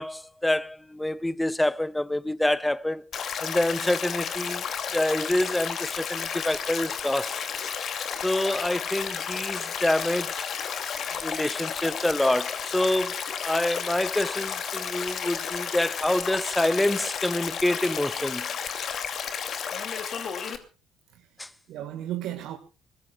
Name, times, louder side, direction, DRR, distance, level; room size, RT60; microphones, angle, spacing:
voice 1, 0.0-3.1 3.4-4.7 4.9-7.3 8.2-10.5 11.2-18.5 21.4-21.5, left 1 dB, 10° left, 0.8 m, -27 dB
Stream, 3.1-20.6, left 7 dB, 50° left, 2.6 m, -32 dB
voice 2, 21.1-22.6, right 12 dB, 60° right, 1.6 m, -36 dB
23.0 x 20.5 x 2.3 m
figure-of-eight pair, 50°, 0 cm